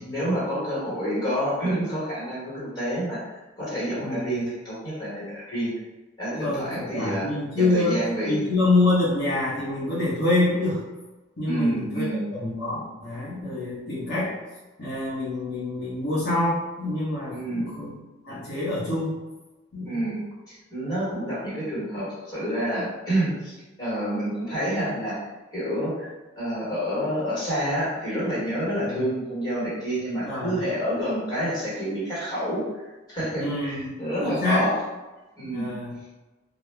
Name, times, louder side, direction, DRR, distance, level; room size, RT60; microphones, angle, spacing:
voice 1, 0.0-5.7 6.2-7.3 7.6-8.4 11.5-12.3 17.3-17.7 19.8-23.5 23.8-25.2 25.5-26.1 26.4-32.6 33.1-34.7 35.4-35.7, equal, 20° left, -9 dB, 1.3 m, -28 dB
voice 2, 4.0-4.4 6.3-8.0 8.3-10.8 11.4-14.3 14.8-17.9 18.2-19.2 19.7-20.0 28.9-29.0 30.3-30.5 33.4-33.9 34.2-34.7 35.4-35.9, left 2 dB, 55° left, -9 dB, 1.1 m, -26 dB
2.3 x 2.0 x 3.2 m, 1.1 s
head